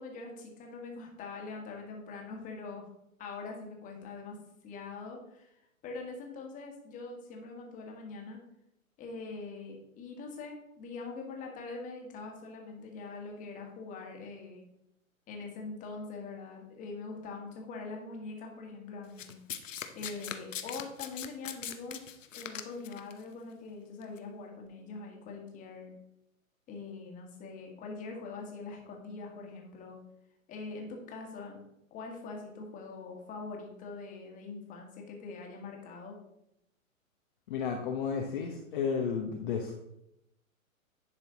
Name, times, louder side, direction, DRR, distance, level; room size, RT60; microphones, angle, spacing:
voice 1, 0.0-2.9 3.2-4.4 4.6-8.4 9.0-14.6 15.3-19.3 19.9-25.9 26.7-30.0 30.5-31.6 31.9-36.2, left 3 dB, 20° left, 1 dB, 1.6 m, -43 dB
Domestic sounds home sounds, 19.2-23.1 24.0-24.2, left 9 dB, 65° left, 0.9 m, -40 dB
voice 2, 37.5-39.8, left 6 dB, 40° left, 2 dB, 0.9 m, -33 dB
10.5 x 4.3 x 4.0 m, 0.82 s
hypercardioid pair, 130°, 41 cm